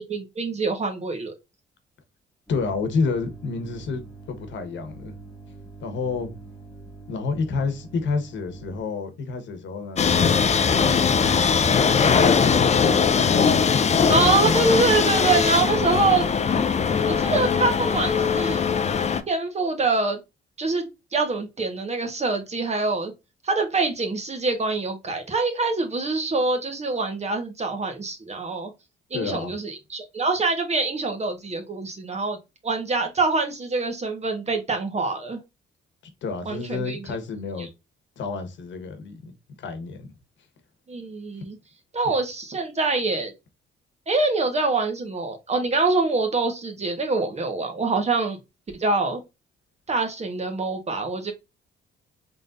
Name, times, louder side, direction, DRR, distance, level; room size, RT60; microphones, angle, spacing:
voice 1, 0.0-1.3 14.1-16.2 17.1-18.6 19.3-20.2 20.6-20.9 21.1-23.1 23.4-28.7 29.1-32.4 32.6-35.4 36.4-37.0 37.6-37.7 40.9-41.6 41.9-43.3 44.1-48.4 48.8-49.2 49.9-51.3, right 3 dB, 35° right, 1.4 m, -25 dB
voice 2, 2.5-5.1 5.8-6.3 7.1-10.6 11.2-11.6 12.1-13.8 29.1-29.5 36.2-37.7 38.2-39.3 39.6-40.1, left 4 dB, 70° left, 1.3 m, -30 dB
sound 1, 2.5-8.8, right 3 dB, ahead, 1.7 m, -44 dB
sound 2, 10.0-19.2, left 6 dB, 35° left, 0.6 m, -20 dB
3.9 x 3.7 x 2.6 m
cardioid pair, 90°, 20 cm